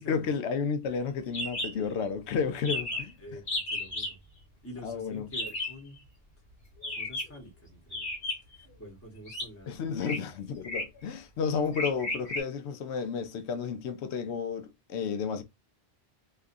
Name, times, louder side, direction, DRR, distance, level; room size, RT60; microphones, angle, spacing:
voice 1, 0.0-3.1 4.8-5.3 9.7-15.4, left 6 dB, 80° left, 0.9 m, -32 dB
sound 1, 1.3-1.7 2.0-2.1 2.3-2.4 2.6-3.1 3.5-4.1 5.3-5.8 6.8-7.4 7.9-8.6 9.3-9.5 10.0-10.2 10.6-11.0 11.7-12.4, left 2 dB, 60° left, 1.4 m, -33 dB
voice 2, 2.7-4.2 4.6-6.0 6.8-8.1 8.5-10.0, equal, 15° left, 0.8 m, -47 dB
2.7 x 2.4 x 2.4 m
omnidirectional pair, 1.1 m